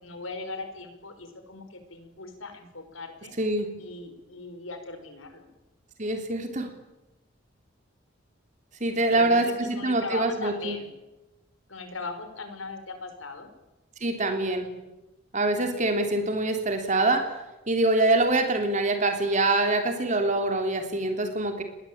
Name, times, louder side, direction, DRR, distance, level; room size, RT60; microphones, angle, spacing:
voice 1, 0.0-3.3 3.8-5.5 9.0-10.9 11.7-13.5, left 3 dB, 90° left, 8 dB, 5.3 m, -39 dB
voice 2, 3.4-3.7 6.0-6.7 8.8-10.8 14.0-14.7 15.3-17.3 17.7-21.6, right 2 dB, 40° right, 5 dB, 3.2 m, -25 dB
28.5 x 21.5 x 8.8 m, 1.0 s
head